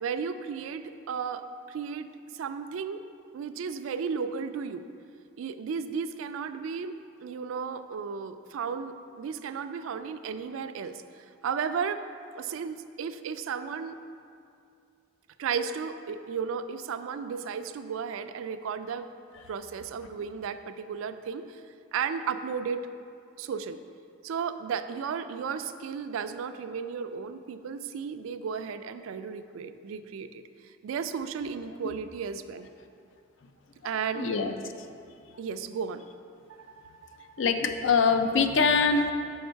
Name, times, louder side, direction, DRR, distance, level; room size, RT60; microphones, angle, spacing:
voice 1, 0.0-3.0 3.3-4.9 5.4-12.0 12.3-14.0 15.4-19.1 19.5-21.6 21.9-22.8 23.4-23.8 24.2-30.4 30.8-32.7 33.8-34.3 35.4-36.0, right 6 dB, 80° right, 10 dB, 0.3 m, -34 dB
voice 2, 33.8-34.9 37.4-39.1, left 5 dB, 65° left, 7 dB, 0.4 m, -24 dB
6.4 x 5.1 x 4.5 m, 2.4 s
head